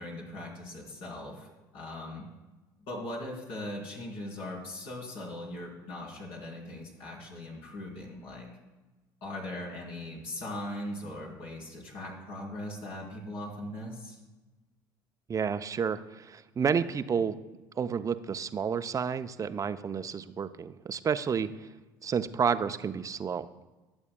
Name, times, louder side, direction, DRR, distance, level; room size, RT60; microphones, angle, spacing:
voice 1, 0.0-2.2 2.8-8.5 9.2-14.2, left 1 dB, 60° left, -3 dB, 3.8 m, -40 dB
voice 2, 15.3-17.4 17.8-21.7 22.0-23.5, right 6 dB, 30° right, 11 dB, 0.6 m, -30 dB
20.5 x 8.1 x 2.3 m, 1.1 s
hypercardioid pair, 60°, 11 cm